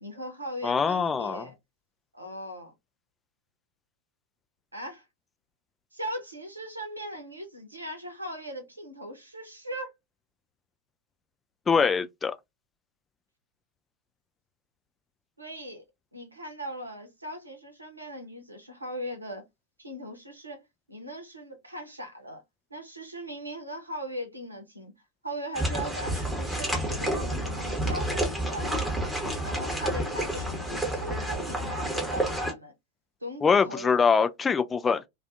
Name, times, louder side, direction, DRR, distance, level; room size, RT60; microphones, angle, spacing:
voice 1, 0.0-1.5 2.1-2.7 4.7-5.0 5.9-9.9 15.4-15.8 16.1-19.4 19.8-20.6 20.9-22.4 22.7-24.9 25.2-29.1 29.4-32.7 33.2-33.9, equal, 85° right, 0.8 m, -39 dB
voice 2, 0.6-1.5 11.7-12.3 33.4-35.1, left 5 dB, 15° left, 0.3 m, -23 dB
sound 1, 25.5-32.5, right 1 dB, 5° right, 0.9 m, -30 dB
sound 2, 26.7-31.9, left 11 dB, 45° left, 0.8 m, -43 dB
2.4 x 2.3 x 2.5 m
figure-of-eight pair, 90°, 0 cm